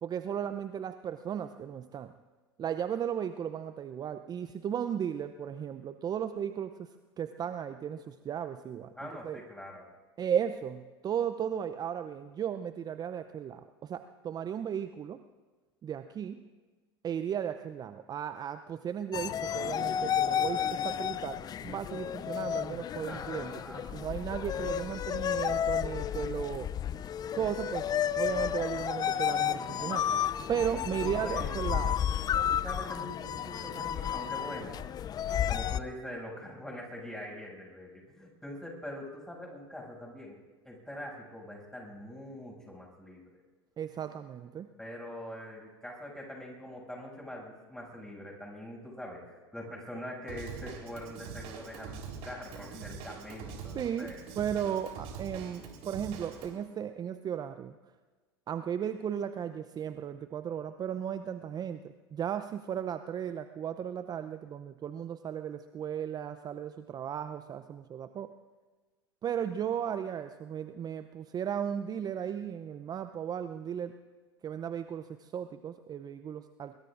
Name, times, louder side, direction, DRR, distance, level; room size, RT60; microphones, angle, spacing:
voice 1, 0.0-2.1 2.6-6.9 7.2-9.4 10.2-15.2 15.8-16.4 17.0-23.6 23.9-26.7 27.3-27.9 28.2-30.1 30.5-32.0 43.8-44.7 53.7-57.7 58.5-68.3 69.2-73.9 74.4-76.8, right 8 dB, 30° right, 10 dB, 0.6 m, -35 dB
voice 2, 9.0-9.8 23.1-24.0 30.7-31.6 32.5-34.8 35.4-40.4 40.6-43.2 44.8-54.2, left 1 dB, 5° left, -2 dB, 6.8 m, -43 dB
sound 1, 19.1-35.8, left 9 dB, 30° left, 0.5 m, -32 dB
Drum kit / Drum, 50.3-56.5, right 6 dB, 55° right, 3.9 m, -44 dB
24.5 x 23.0 x 2.6 m, 1.3 s
hypercardioid pair, 85°, 13 cm